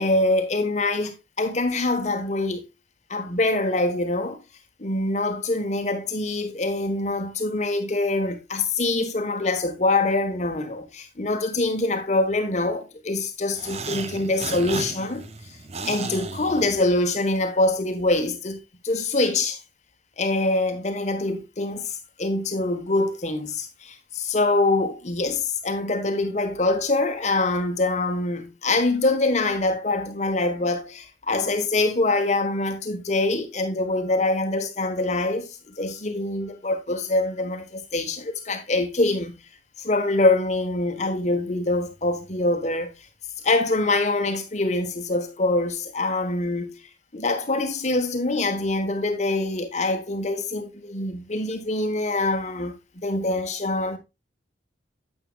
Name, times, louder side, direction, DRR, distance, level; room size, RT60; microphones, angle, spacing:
voice 1, 0.0-2.6 3.1-4.4 4.8-15.3 15.8-19.6 20.2-39.3 39.8-42.9 43.4-46.8 47.1-54.0, left 2 dB, 40° left, 1.3 m, -24 dB
sound 1, 13.5-17.3, right 4 dB, 35° right, 0.9 m, -35 dB
9.3 x 8.7 x 2.3 m
head